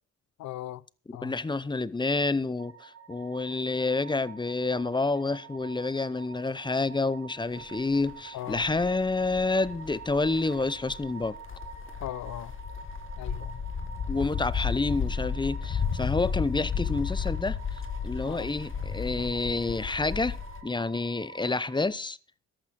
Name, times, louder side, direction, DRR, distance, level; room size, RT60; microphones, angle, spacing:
voice 1, 0.4-0.8 1.1-1.3 8.3-8.6 12.0-12.5 13.2-13.6 18.3-18.5, left 14 dB, 70° left, 0.6 m, -38 dB
voice 2, 1.1-11.4 14.1-20.4 20.6-22.2, left 3 dB, 15° left, 0.8 m, -29 dB
sound 1, 2.6-21.8, right 6 dB, 60° right, 2.3 m, -47 dB
sound 2, 7.7-8.1 8.5-20.6, left 6 dB, 40° left, 1.8 m, -33 dB
14.0 x 11.0 x 4.3 m
cardioid pair, 90°, 30 cm